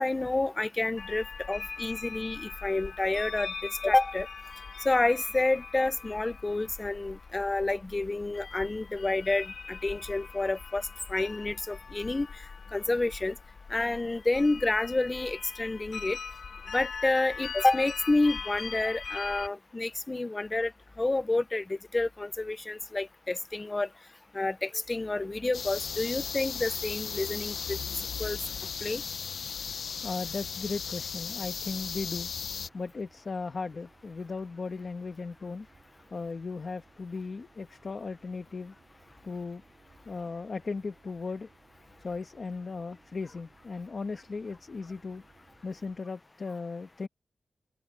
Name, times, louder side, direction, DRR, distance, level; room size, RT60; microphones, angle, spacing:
voice 1, 0.0-4.3 4.8-10.8 11.1-12.3 12.7-13.4 13.7-16.2 16.7-20.7 21.0-23.9 24.3-27.8 28.2-28.4 28.8-29.0, left 2 dB, 25° left, 0.6 m, -29 dB
sound 1, 1.0-19.5, left 5 dB, 65° left, 1.7 m, -41 dB
sound 2, 25.5-32.7, left 6 dB, 85° left, 0.7 m, -36 dB
voice 2, 29.7-32.3 32.7-35.7 36.1-38.7 39.2-39.6 40.0-41.5 42.0-45.2 45.6-47.1, left 4 dB, 45° left, 1.3 m, -37 dB
sound 3, 30.3-46.0, right 4 dB, 50° right, 7.2 m, -63 dB
open air
wide cardioid pair, 130°, 0 cm